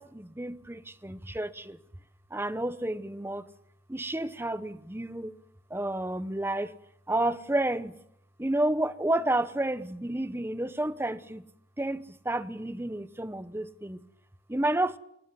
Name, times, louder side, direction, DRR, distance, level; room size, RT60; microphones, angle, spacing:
voice 1, 0.0-1.8 2.3-3.5 3.9-5.3 5.7-6.7 7.1-7.9 8.4-11.4 11.8-14.0 14.5-15.0, right 1 dB, 15° right, 0.9 m, -30 dB
23.5 x 19.0 x 8.3 m
head